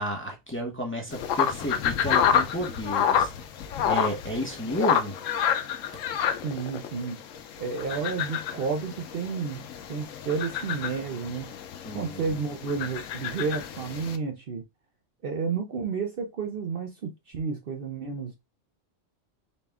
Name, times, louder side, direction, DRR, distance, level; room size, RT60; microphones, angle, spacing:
voice 1, 0.0-3.3 3.8-5.2 11.8-12.2, equal, 10° left, 0.8 m, -32 dB
sound 1, 1.1-14.2, left 8 dB, 85° left, 1.0 m, -29 dB
voice 2, 6.4-7.2 7.6-11.5 11.9-14.6 15.2-18.4, right 5 dB, 55° right, 0.7 m, -31 dB
4.1 x 2.2 x 3.4 m
omnidirectional pair, 1.3 m